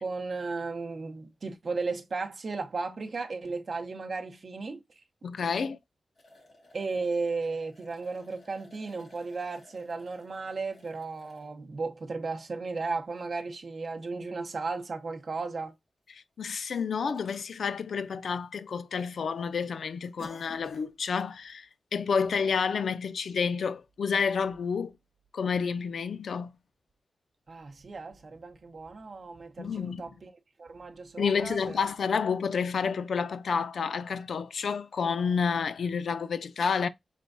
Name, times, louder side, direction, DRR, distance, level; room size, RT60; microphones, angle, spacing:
voice 1, 0.0-5.0 6.7-15.7 27.5-30.3 30.6-31.9, right 4 dB, 45° right, 0.7 m, -35 dB
voice 2, 5.2-5.8 16.4-24.9 25.3-26.5 29.6-30.0 31.2-36.9, left 6 dB, 80° left, 0.4 m, -29 dB
sound 1, 6.1-11.5 12.2-12.3 13.9-14.0 14.3-14.4 15.4-15.5 15.7-15.8 16.4-16.9 17.1-17.3 17.7-18.4 18.7-19.0 19.4-19.5 20.0-20.9 21.3-21.5 21.9-22.0, left 2 dB, 45° left, 1.5 m, -54 dB
4.3 x 3.3 x 2.5 m
wide cardioid pair, 145°, 0 cm